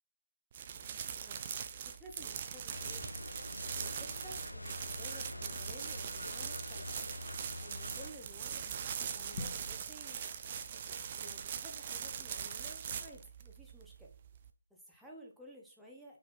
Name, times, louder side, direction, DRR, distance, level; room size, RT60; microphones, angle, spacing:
sound 1, 0.5-14.5, right 8 dB, 20° right, 0.4 m, -42 dB
voice 1, 1.8-3.3 3.8-6.9 7.6-10.2 11.2-14.1 14.7-16.2, equal, ahead, -3 dB, 0.8 m, -54 dB
sound 2, 2.7-8.1, left 1 dB, 80° left, 1.2 m, -45 dB
sound 3, 8.6-9.8, left 3 dB, 25° left, 1.6 m, -54 dB
5.8 x 3.9 x 4.4 m, 0.38 s
figure-of-eight pair, 160°, 0 cm